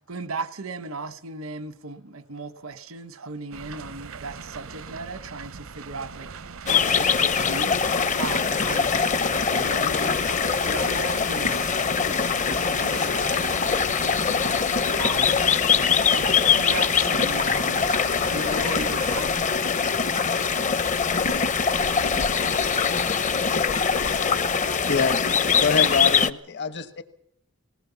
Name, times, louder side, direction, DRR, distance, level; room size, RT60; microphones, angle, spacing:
voice 1, 0.0-6.3 6.7-11.8 12.0-14.4 14.9-15.4 16.1-19.5, right 3 dB, 90° right, 1.2 m, -36 dB
sound 1, 3.5-19.2, right 5 dB, 70° right, 0.7 m, -40 dB
sound 2, 6.7-26.3, left 6 dB, 35° left, 0.7 m, -23 dB
voice 2, 22.0-25.9, left 5 dB, 80° left, 0.8 m, -42 dB
voice 3, 24.9-25.2 25.6-27.0, left 4 dB, 55° left, 1.3 m, -24 dB
20.0 x 18.5 x 7.0 m
head